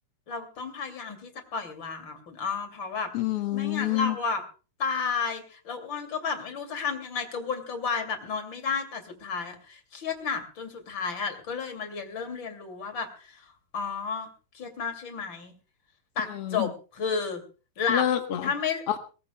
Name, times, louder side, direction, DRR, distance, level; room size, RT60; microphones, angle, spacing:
voice 1, 0.3-3.1 3.5-4.4 4.8-13.4 13.7-14.3 14.5-15.5 16.2-17.4 17.8-18.1 18.4-18.8, left 5 dB, 35° left, 6 dB, 2.7 m, -32 dB
voice 2, 3.1-4.2 16.3-16.7 17.9-18.5 18.9-19.0, left 13 dB, 80° left, 6 dB, 1.3 m, -27 dB
22.5 x 19.0 x 2.3 m, 0.34 s
omnidirectional pair, 4.6 m